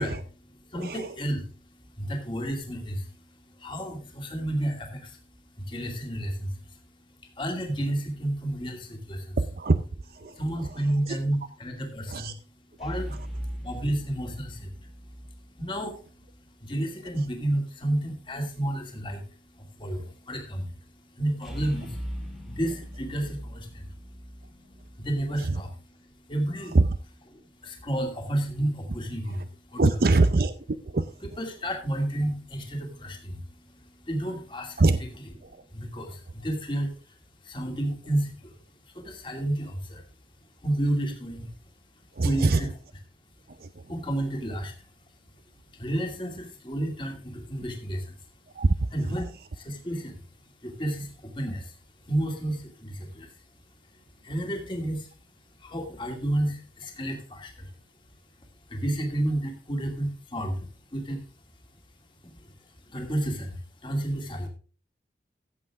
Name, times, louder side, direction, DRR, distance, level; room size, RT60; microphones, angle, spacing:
voice 1, 0.0-9.4 10.2-12.4 12.8-26.8 27.3-29.8 31.4-35.1 35.7-37.2 37.4-38.5 38.9-40.0 40.6-41.5 42.2-42.7 43.9-44.7 45.7-48.2 48.9-49.2 49.5-50.2 50.6-51.8 52.0-53.3 54.2-55.1 55.6-57.7 58.7-61.2 62.3-62.5 62.9-64.5, right 1 dB, 30° left, 2 dB, 2.5 m, -32 dB
voice 2, 0.7-1.2 9.4-11.2 12.1-12.3 13.1-13.2 25.4-25.6 26.7-26.9 29.3-29.4 29.8-31.3 34.8-35.0 35.4-35.6 42.1-42.7 43.5-43.9 48.5-49.2, right 3 dB, 55° right, 10 dB, 0.6 m, -25 dB
sound 1, 8.1-8.7 12.8-16.4 21.4-25.5, equal, ahead, 1.9 m, -40 dB
15.0 x 8.0 x 3.6 m, 0.38 s
head